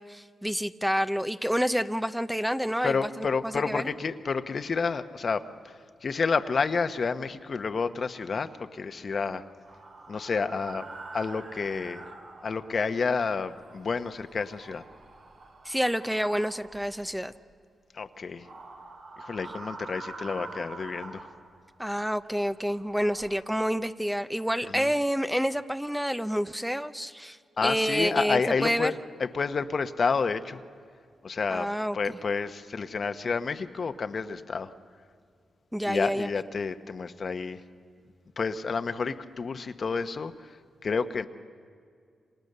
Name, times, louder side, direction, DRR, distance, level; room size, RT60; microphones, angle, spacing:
voice 1, 0.0-3.9 15.6-17.3 21.8-28.9 31.5-32.0 35.7-36.3, equal, 5° right, 11 dB, 0.7 m, -28 dB
voice 2, 2.8-5.8 6.0-9.4 10.1-10.9 11.1-12.1 12.4-14.8 17.9-18.5 19.2-21.3 24.6-24.9 27.6-30.6 31.2-34.7 35.8-37.6 38.4-41.3, left 5 dB, 55° left, 9 dB, 1.1 m, -30 dB
sound 1, 9.6-13.1 13.4-17.4 18.3-21.9 22.4-23.4, right 3 dB, 70° right, 3.5 m, -46 dB
29.0 x 26.0 x 6.8 m, 2.2 s
cardioid pair, 60°, 0 cm